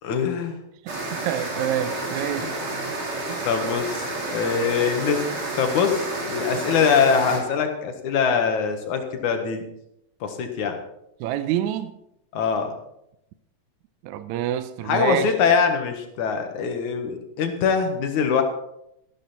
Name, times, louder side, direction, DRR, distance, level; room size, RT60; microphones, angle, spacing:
voice 1, 0.0-0.6 2.4-2.5 3.5-5.3 5.6-9.6 10.2-10.8 12.3-12.7 14.9-18.4, left 6 dB, 85° left, 3.0 m, -23 dB
voice 2, 0.8-2.5 3.3-3.5 11.2-11.9 14.0-15.3, right 11 dB, 80° right, 2.0 m, -27 dB
sound 1, 0.9-7.4, right 2 dB, 45° right, 3.6 m, -30 dB
13.5 x 12.0 x 4.4 m
omnidirectional pair, 3.3 m